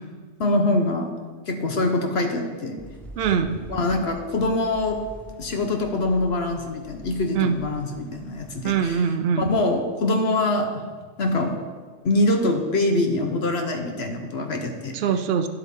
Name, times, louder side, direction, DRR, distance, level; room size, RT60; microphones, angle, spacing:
voice 1, 0.4-1.1 1.5-2.8 3.7-5.0 5.4-9.0 9.4-10.8 11.2-11.6 12.0-15.0, left 2 dB, 50° left, 5 dB, 0.9 m, -24 dB
sound 1, 2.8-9.0, right 1 dB, ahead, 0.5 m, -44 dB
voice 2, 3.2-3.6 7.3-7.5 8.6-9.5 14.9-15.5, right 7 dB, 60° right, 8 dB, 0.6 m, -22 dB
10.0 x 8.0 x 3.6 m, 1.5 s
omnidirectional pair, 1.6 m